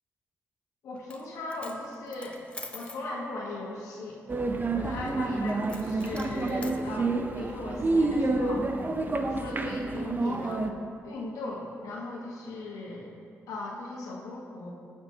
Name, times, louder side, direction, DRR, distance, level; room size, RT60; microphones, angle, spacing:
voice 1, 0.8-2.4 2.7-4.2 4.7-8.7 9.2-10.7 11.0-13.1 13.5-14.7, left 2 dB, 85° left, -3 dB, 1.3 m, -38 dB
Coin (dropping), 0.9-1.2 1.5-3.0 5.7-6.8, left 2 dB, 20° left, 0.8 m, -45 dB
sound 1, 4.3-10.7, right 2 dB, 35° right, 0.6 m, -29 dB
15.5 x 6.0 x 2.8 m, 2.3 s
cardioid pair, 70°, 6 cm